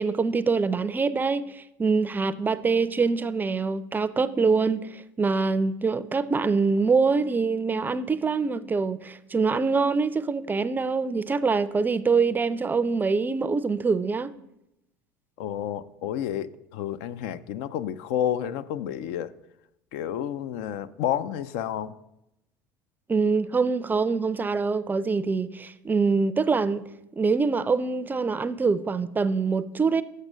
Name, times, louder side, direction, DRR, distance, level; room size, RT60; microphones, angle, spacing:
voice 1, 0.0-14.3 23.1-30.0, right 4 dB, 20° right, 0.4 m, -24 dB
voice 2, 15.4-19.3 19.9-21.9, left 10 dB, 75° left, 0.4 m, -30 dB
6.6 x 6.5 x 6.1 m
supercardioid pair, 95°, 10 cm